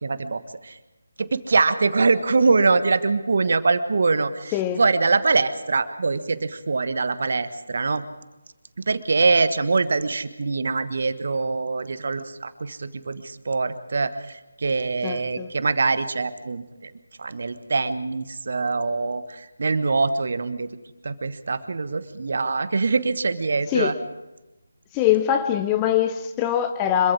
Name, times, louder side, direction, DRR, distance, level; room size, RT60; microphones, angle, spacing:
voice 1, 0.0-0.8 1.2-8.0 8.8-16.9 17.2-20.7 21.0-23.9, right 4 dB, 50° right, 1.4 m, -23 dB
voice 2, 15.0-15.5 23.7-24.0 24.9-27.1, left 10 dB, 15° left, 0.6 m, -22 dB
26.0 x 23.0 x 4.8 m
figure-of-eight pair, 155°, 0 cm